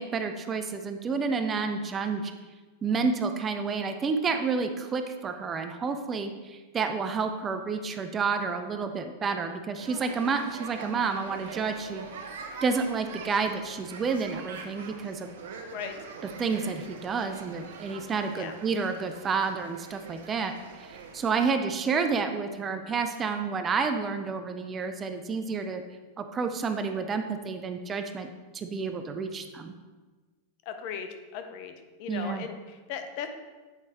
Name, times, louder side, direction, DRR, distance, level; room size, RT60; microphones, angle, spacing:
voice 1, 0.0-2.3 2.8-12.1 12.6-15.3 16.4-20.5 21.1-25.8 26.2-29.7 32.1-32.5, right 5 dB, 25° right, 7 dB, 0.5 m, -30 dB
sound 1, 9.8-21.3, right 5 dB, 70° right, 0.7 m, -44 dB
voice 2, 30.7-31.7 32.0-33.3, left 7 dB, 55° left, 7 dB, 0.6 m, -37 dB
8.2 x 4.6 x 2.9 m, 1.3 s
hypercardioid pair, 100°, 0 cm